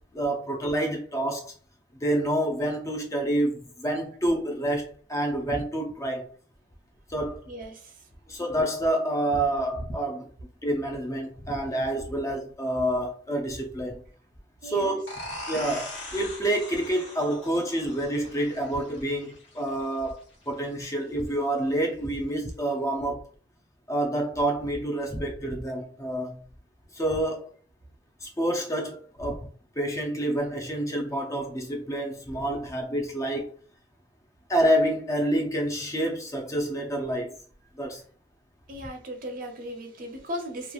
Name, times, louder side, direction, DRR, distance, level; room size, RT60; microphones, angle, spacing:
voice 1, 0.1-1.5 2.0-6.3 7.1-7.4 8.3-10.3 10.6-14.0 14.6-15.0 15.5-20.2 20.5-23.3 23.9-26.4 26.9-27.5 28.2-29.5 29.8-33.5 34.5-37.4 37.8-38.0, right 1 dB, 15° left, 0.4 m, -28 dB
voice 2, 7.5-8.1 14.6-15.0 38.7-40.7, equal, 45° right, 0.6 m, -37 dB
sound 1, 15.1-20.5, left 1 dB, 70° left, 1.0 m, -41 dB
2.9 x 2.3 x 2.3 m
head